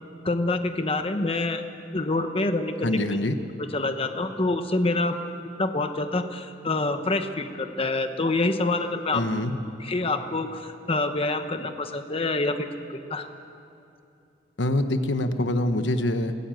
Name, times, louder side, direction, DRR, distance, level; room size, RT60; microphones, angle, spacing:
voice 1, 0.2-1.6 1.9-3.2 3.7-5.2 5.6-9.3 9.8-12.7 13.0-13.3, left 2 dB, 30° left, 7 dB, 1.0 m, -26 dB
voice 2, 2.8-3.4 9.1-9.6 14.6-16.4, left 1 dB, 75° left, 8 dB, 1.2 m, -25 dB
22.0 x 16.5 x 9.1 m, 2.7 s
head